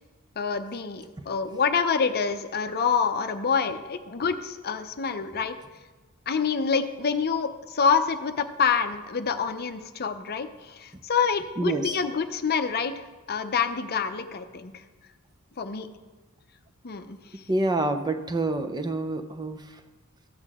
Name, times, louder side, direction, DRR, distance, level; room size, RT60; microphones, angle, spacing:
voice 1, 0.4-5.5 6.3-14.8 15.6-15.9 16.8-17.2, left 6 dB, 45° left, 9 dB, 0.6 m, -27 dB
voice 2, 11.6-12.0 17.5-19.6, right 2 dB, 20° right, 8 dB, 0.5 m, -27 dB
14.0 x 8.6 x 3.6 m, 1.2 s
head